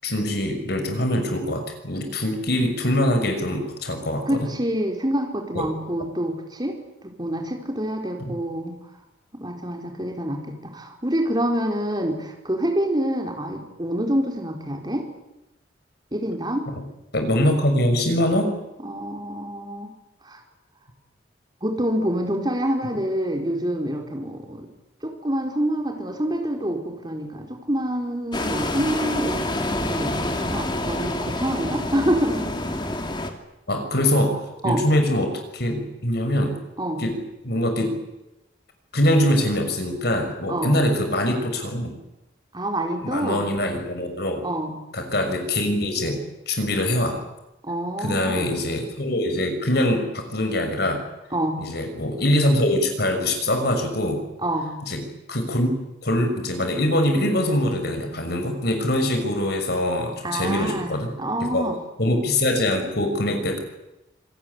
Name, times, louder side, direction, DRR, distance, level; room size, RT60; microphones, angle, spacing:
voice 1, 0.0-4.4 5.5-5.6 8.2-8.4 17.1-18.5 33.7-36.5 36.9-38.0 38.9-41.9 43.0-44.4 44.9-46.2 46.5-47.2 48.0-51.0 51.6-54.2 54.8-55.7 56.0-61.1 61.4-63.6, left 1 dB, 60° left, 6 dB, 6.0 m, -23 dB
voice 2, 4.2-6.8 7.0-8.8 9.4-15.1 16.1-16.7 18.8-19.9 20.2-20.4 21.6-24.7 25.0-29.5 29.8-32.5 34.6-34.8 36.8-37.0 40.5-40.8 42.5-43.5 44.4-44.7 47.6-48.5 51.3-51.6 54.4-54.7 60.2-61.8, right 1 dB, 25° right, 2 dB, 4.6 m, -27 dB
sound 1, 28.3-33.3, left 1 dB, 25° left, 2.6 m, -27 dB
27.0 x 20.0 x 9.9 m, 0.94 s
head